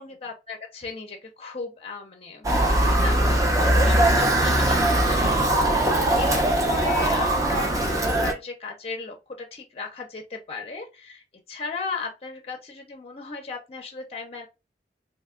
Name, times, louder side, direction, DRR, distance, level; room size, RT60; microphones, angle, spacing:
voice 1, 0.0-14.5, left 4 dB, 35° left, 0.5 m, -37 dB
Motor vehicle (road) / Siren, 2.4-8.3, right 1 dB, 20° right, 0.5 m, -21 dB
2.8 x 2.2 x 3.5 m
head